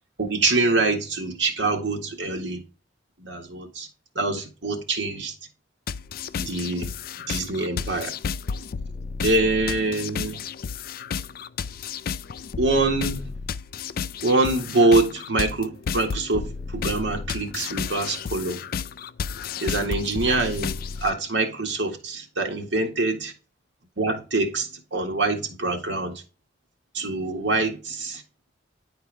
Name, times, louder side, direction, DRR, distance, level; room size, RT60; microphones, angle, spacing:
voice 1, 0.2-2.6 3.2-3.9 4.2-5.3 6.4-6.9 7.3-8.2 9.2-10.4 12.6-13.2 14.2-18.6 19.6-23.3 24.0-26.1 26.9-28.2, right 2 dB, 90° right, 1.8 m, -25 dB
sound 1, 5.9-21.1, left 6 dB, 55° left, 0.4 m, -32 dB
10.0 x 4.5 x 3.4 m
head